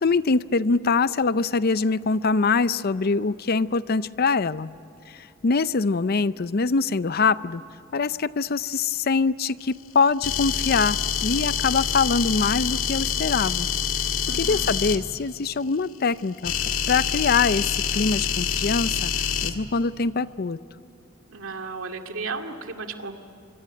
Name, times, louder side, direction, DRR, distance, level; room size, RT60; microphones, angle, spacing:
voice 1, 0.0-4.7 5.1-7.6 7.9-13.7 14.4-16.5 16.9-19.1 19.4-20.6, left 4 dB, 50° left, 16 dB, 0.5 m, -23 dB
sound 1, 10.2-15.0 16.4-19.5, left 7 dB, 90° left, 1.9 m, -26 dB
voice 2, 14.3-14.7 21.3-23.1, right 4 dB, 75° right, 5 dB, 2.2 m, -34 dB
25.5 x 25.0 x 9.0 m, 2.9 s
head